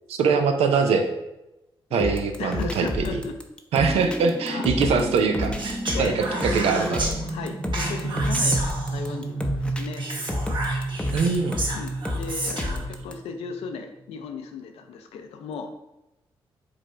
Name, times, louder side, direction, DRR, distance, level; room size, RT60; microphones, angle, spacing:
voice 1, 0.1-1.1 1.9-3.2 3.7-7.1 11.1-11.6, right 5 dB, 85° right, 6 dB, 0.5 m, -23 dB
voice 2, 1.9-3.4 4.5-4.7 5.9-10.0 11.7-15.7, left 5 dB, 90° left, 6 dB, 0.5 m, -36 dB
sound 1, 2.0-13.1, left 2 dB, 10° left, 0.6 m, -31 dB
sound 2, 3.8-14.2, right 2 dB, 20° right, 0.8 m, -32 dB
Speech, 5.6-7.1 7.7-9.2 10.0-12.8, right 2 dB, 50° right, 1.2 m, -31 dB
5.0 x 2.4 x 4.3 m, 0.93 s
supercardioid pair, 55°, 10 cm